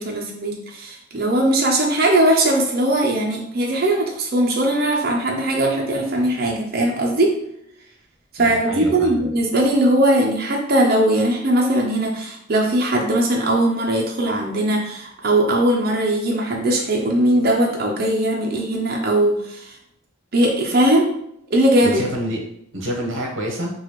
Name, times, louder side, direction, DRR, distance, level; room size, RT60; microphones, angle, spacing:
voice 1, 0.0-7.4 8.3-19.7 20.3-21.1 21.5-22.0, right 1 dB, 45° right, -1 dB, 0.6 m, -19 dB
voice 2, 8.4-9.3 21.8-22.4 22.7-23.7, equal, 70° right, 0 dB, 1.1 m, -27 dB
3.9 x 2.4 x 3.1 m, 0.73 s
head